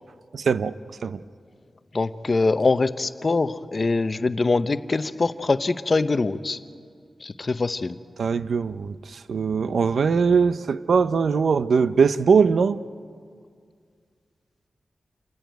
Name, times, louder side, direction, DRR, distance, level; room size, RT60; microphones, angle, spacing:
voice 1, 0.3-0.7 1.0-1.2 8.2-12.8, right 5 dB, 80° right, 0.5 m, -21 dB
voice 2, 1.9-6.6 7.2-8.0, left 3 dB, 40° left, 0.7 m, -23 dB
28.0 x 14.0 x 9.3 m
wide cardioid pair, 120°, 0 cm